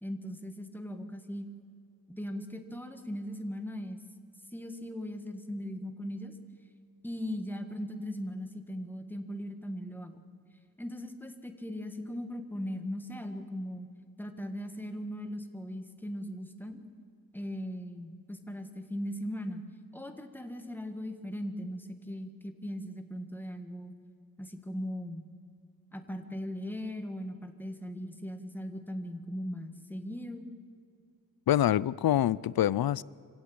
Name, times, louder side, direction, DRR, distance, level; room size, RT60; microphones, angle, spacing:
voice 1, 0.0-1.5 2.1-4.0 4.5-6.3 7.0-10.2 10.8-13.9 14.2-16.8 17.3-19.7 19.9-23.9 24.4-25.3 25.9-30.5, equal, 5° left, 1.6 m, -39 dB
voice 2, 31.5-33.0, left 12 dB, 85° left, 0.5 m, -25 dB
25.5 x 16.0 x 8.7 m
wide cardioid pair, 145°, 35 cm